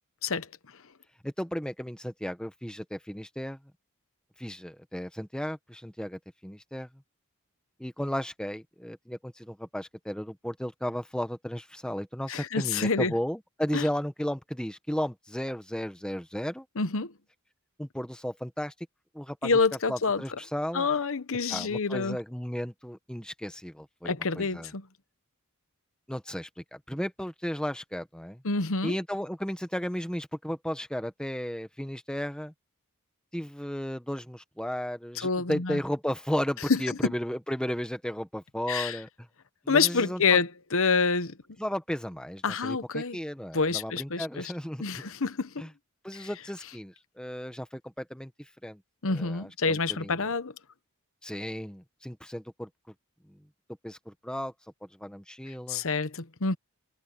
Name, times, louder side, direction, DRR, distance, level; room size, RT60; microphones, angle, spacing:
voice 1, 1.2-3.6 4.4-6.9 7.8-16.7 17.8-18.7 19.1-19.5 19.9-20.9 21.5-24.7 26.1-28.4 28.8-32.5 33.3-39.1 39.6-40.4 41.6-45.0 45.6-45.7 46.0-48.8 49.1-50.3 51.2-52.7 53.2-53.5 53.8-54.5 54.8-55.8, equal, 5° left, 1.3 m, -34 dB
voice 2, 12.3-13.1 13.7-13.8 16.8-17.1 19.4-20.2 20.7-22.2 24.0-24.9 28.4-28.9 35.2-35.8 36.7-37.0 38.7-39.0 39.7-41.4 42.4-43.2 43.5-44.5 44.8-45.6 49.0-50.5 55.7-56.6, left 4 dB, 65° left, 1.0 m, -27 dB
head